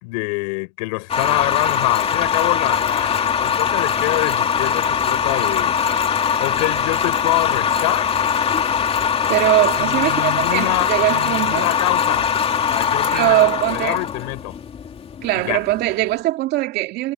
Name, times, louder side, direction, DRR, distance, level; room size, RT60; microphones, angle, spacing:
voice 1, 0.0-5.8 6.4-8.1 9.8-12.3 12.7-14.6 15.3-15.6, left 28 dB, 70° left, 4.7 m, -25 dB
sound 1, 1.1-16.0, left 7 dB, 30° left, 2.8 m, -21 dB
voice 2, 9.3-11.7 13.0-14.0 15.2-17.1, right 16 dB, 55° right, 2.3 m, -20 dB
supercardioid pair, 105°, 20 cm